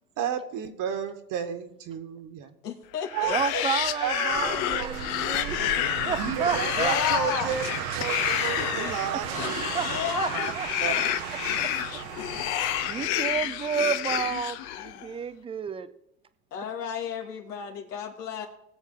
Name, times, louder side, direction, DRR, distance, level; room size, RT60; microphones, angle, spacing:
voice 1, 0.2-2.5 3.1-3.6 3.9-5.3 6.2-7.6 7.9-10.0 10.3-10.5 10.8-11.1, right 8 dB, 40° right, 1.6 m, -32 dB
voice 2, 2.6-3.6 6.8-7.5 9.8-10.4 16.5-18.5, left 7 dB, 80° left, 2.6 m, -32 dB
sound 1, 3.0-15.1, left 12 dB, 50° left, 1.0 m, -29 dB
voice 3, 3.3-6.9 9.1-10.3 10.6-11.0 11.6-11.7 12.8-15.9, right 7 dB, 10° right, 0.5 m, -31 dB
sound 2, 4.3-13.1, right 11 dB, 65° right, 1.1 m, -35 dB
20.5 x 7.1 x 3.8 m
hypercardioid pair, 105°, 47 cm